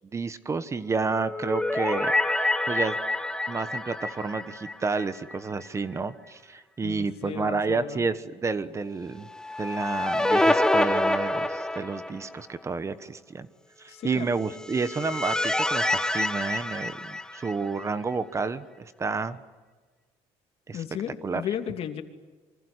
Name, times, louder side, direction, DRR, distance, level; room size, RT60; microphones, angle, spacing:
voice 1, 0.1-2.9 3.5-9.3 9.6-13.5 13.8-19.4 20.7-20.8 21.2-21.4, right 4 dB, 25° right, 13 dB, 1.2 m, -30 dB
sound 1, 1.1-5.4 5.7-5.8 9.3-12.4 14.4-17.8, left 1 dB, 5° left, 1.5 m, -27 dB
voice 2, 6.8-8.1 13.9-14.3 20.7-22.0, left 9 dB, 60° left, 6 dB, 2.9 m, -34 dB
27.5 x 25.0 x 8.2 m, 1.4 s
cardioid pair, 120°, 12 cm